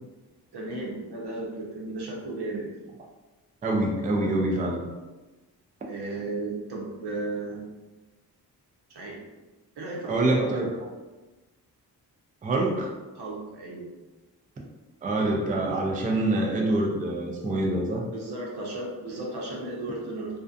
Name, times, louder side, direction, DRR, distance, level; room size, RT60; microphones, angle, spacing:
voice 1, 0.5-2.7 5.9-7.7 8.9-9.2 9.8-10.5 13.1-13.9 18.1-20.3, right 2 dB, 85° right, -2 dB, 0.8 m, -34 dB
voice 2, 3.6-4.9 10.1-10.8 12.4-12.9 15.0-18.1, right 2 dB, 20° right, 0 dB, 0.3 m, -25 dB
2.4 x 2.2 x 2.5 m, 1.1 s
wide cardioid pair, 130°, 39 cm